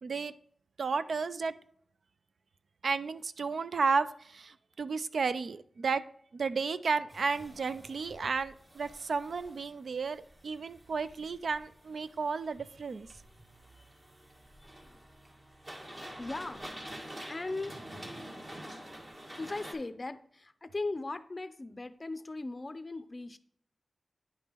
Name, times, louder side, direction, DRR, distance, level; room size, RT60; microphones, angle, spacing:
voice 1, 0.0-0.3 0.8-1.6 2.8-6.0 6.3-13.1, right 4 dB, 75° right, 13 dB, 0.3 m, -33 dB
sound 1, 7.1-19.7, equal, 35° right, 1.5 m, -48 dB
voice 2, 16.2-16.7 17.3-17.8 19.4-23.4, left 2 dB, 35° left, 12 dB, 0.5 m, -38 dB
9.8 x 5.4 x 2.9 m, 0.62 s
wide cardioid pair, 70°, 0 cm